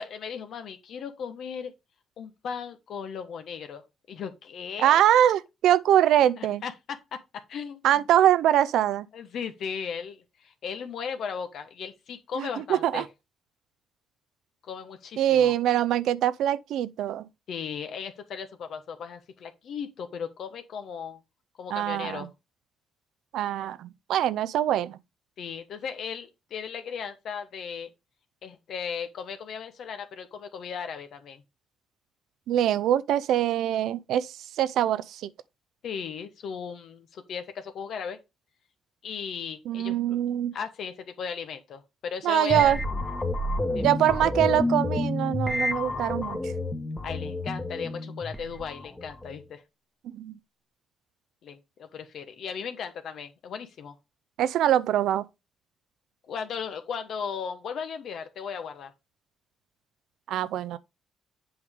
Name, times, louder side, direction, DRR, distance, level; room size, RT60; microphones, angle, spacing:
voice 1, 0.0-1.7 2.2-3.8 4.1-5.0 6.4-7.0 7.5-8.0 9.1-13.0 14.6-15.5 17.5-21.2 21.6-22.3 25.4-27.9 28.4-31.4 35.8-38.2 39.0-40.2 40.5-42.7 43.7-43.9 47.0-49.6 51.4-53.9 56.3-58.9, left 6 dB, 70° left, 1.1 m, -36 dB
voice 2, 4.8-6.6 7.8-9.1 12.4-13.1 15.2-17.3 21.7-22.3 23.3-25.0 32.5-35.3 39.7-40.5 42.2-42.8 43.8-46.5 50.1-50.3 54.4-55.3 60.3-60.8, right 11 dB, 80° right, 0.5 m, -23 dB
sound 1, 42.5-49.4, left 2 dB, 20° left, 1.4 m, -30 dB
7.8 x 5.0 x 3.6 m
cardioid pair, 90°, 0 cm